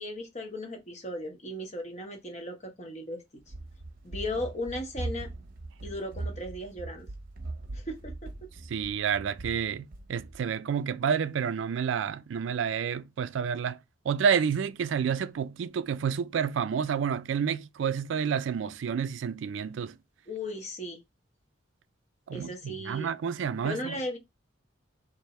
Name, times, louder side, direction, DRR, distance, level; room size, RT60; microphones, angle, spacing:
voice 1, 0.0-3.2 4.0-5.3 5.8-7.1 7.7-8.5 20.3-21.0 22.3-23.1 23.6-24.2, left 1 dB, 35° left, 0.9 m, -36 dB
Run, 3.4-10.5, right 2 dB, 45° right, 0.7 m, -40 dB
voice 2, 8.7-13.8 14.1-20.0 22.3-23.9, right 7 dB, 70° right, 0.3 m, -29 dB
3.3 x 2.6 x 4.1 m
head